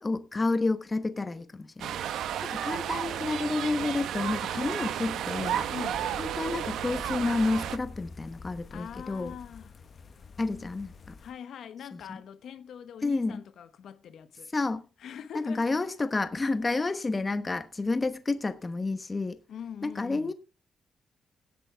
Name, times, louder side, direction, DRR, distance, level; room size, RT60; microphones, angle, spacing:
voice 1, 0.0-5.6 6.2-9.3 10.4-11.1 11.9-12.2 13.0-13.4 14.5-14.8 15.3-19.4 19.8-20.3, left 3 dB, 25° left, 1.1 m, -30 dB
sound 1, 1.8-7.8, right 10 dB, 90° right, 1.0 m, -32 dB
sound 2, 5.4-11.3, left 4 dB, 45° left, 1.2 m, -48 dB
voice 2, 5.7-6.1 8.7-9.8 11.2-14.5 15.0-15.7 19.5-20.3, left 8 dB, 75° left, 1.3 m, -43 dB
17.0 x 8.4 x 3.5 m
cardioid pair, 105°, 0 cm